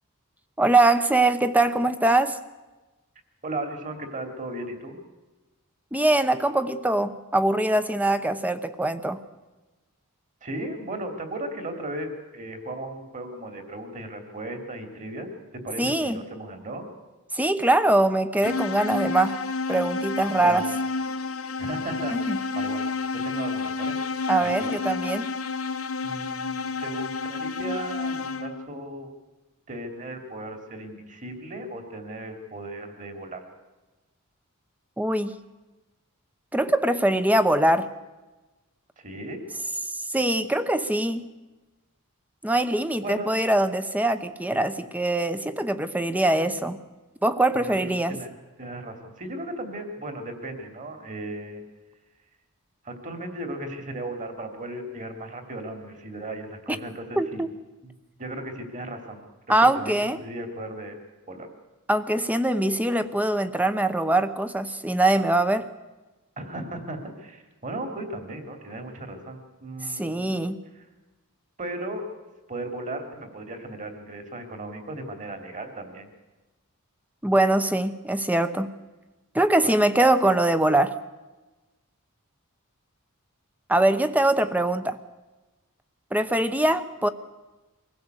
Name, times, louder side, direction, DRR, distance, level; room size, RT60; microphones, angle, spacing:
voice 1, 0.6-2.4 5.9-9.2 15.8-16.2 17.3-19.4 19.7-20.7 22.1-22.4 24.3-25.3 35.0-35.4 36.5-37.9 40.1-41.2 42.4-46.8 47.2-48.2 56.7-56.8 57.2-57.5 59.5-60.2 61.9-65.7 69.9-70.6 77.2-78.7 79.3-80.9 83.7-85.0 86.1-87.1, right 2 dB, 5° right, 11 dB, 0.9 m, -22 dB
voice 2, 3.4-5.0 10.4-16.8 20.4-20.6 21.6-24.0 24.4-24.7 26.0-29.1 29.7-33.4 39.0-39.4 43.0-43.3 47.5-48.3 48.6-51.6 52.8-57.4 58.2-59.2 59.7-59.9 60.2-61.0 61.3-61.5 66.4-70.5 71.6-72.1 72.5-76.1 79.6-79.7, right 1 dB, 35° right, 6 dB, 2.9 m, -36 dB
sound 1, 18.4-28.8, left 4 dB, 70° left, 1.1 m, -30 dB
23.5 x 16.0 x 8.1 m, 1.2 s
head